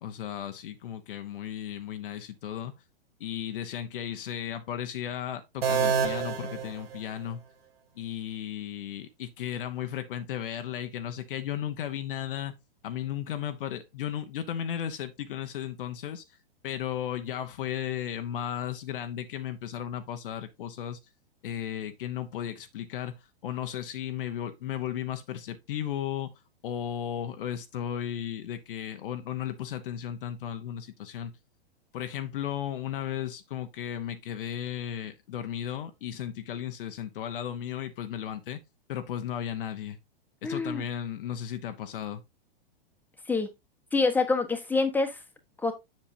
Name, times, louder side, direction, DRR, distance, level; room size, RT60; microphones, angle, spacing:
voice 1, 0.0-2.7 3.2-7.4 7.9-12.5 12.8-16.4 16.6-21.0 21.4-26.3 26.6-31.3 31.9-38.6 38.9-40.0 40.4-42.2, left 10 dB, 60° left, 1.0 m, -35 dB
sound 1, 5.6-7.5, right 6 dB, 80° right, 1.8 m, -29 dB
voice 2, 40.4-40.8 43.3-43.5 43.9-45.2 45.6-45.7, left 3 dB, 5° left, 1.2 m, -26 dB
7.4 x 6.7 x 2.7 m
hypercardioid pair, 115°, 30 cm